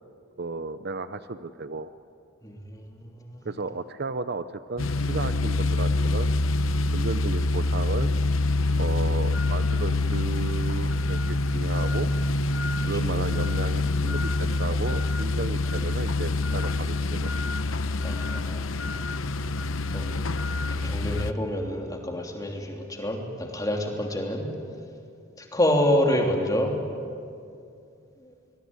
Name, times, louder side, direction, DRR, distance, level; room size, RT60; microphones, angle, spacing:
voice 1, 0.4-1.9 3.4-6.3 6.9-8.1 8.8-12.1 12.8-17.3, right 3 dB, 50° right, 12 dB, 0.7 m, -33 dB
voice 2, 2.4-3.4 12.8-12.9 18.0-18.8 19.9-20.4 20.7-24.5 25.4-26.7 28.2-28.3, left 1 dB, 20° left, 1 dB, 3.1 m, -28 dB
sound 1, 4.8-21.3, left 2 dB, 80° left, 0.9 m, -26 dB
24.5 x 21.5 x 9.6 m, 2.4 s
head